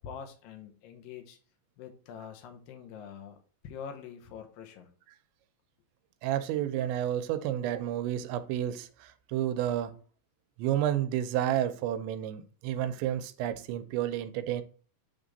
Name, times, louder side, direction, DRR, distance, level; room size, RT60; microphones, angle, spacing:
voice 1, 0.0-1.4 1.8-3.4 3.6-4.9, left 7 dB, 75° left, 2.1 m, -45 dB
voice 2, 6.2-10.0 10.6-14.6, right 11 dB, 85° right, 2.8 m, -31 dB
8.6 x 3.6 x 4.0 m
omnidirectional pair, 5.2 m